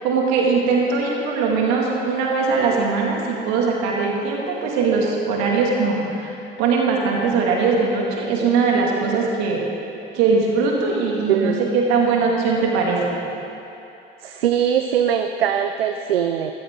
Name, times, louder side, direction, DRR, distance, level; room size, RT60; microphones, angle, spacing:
voice 1, 0.0-9.6 10.1-13.2, right 4 dB, 65° right, -1 dB, 2.4 m, -20 dB
voice 2, 11.3-11.7 14.2-16.5, right 9 dB, 85° right, 7 dB, 0.5 m, -21 dB
16.0 x 14.0 x 3.8 m, 2.8 s
figure-of-eight pair, 55°, 29 cm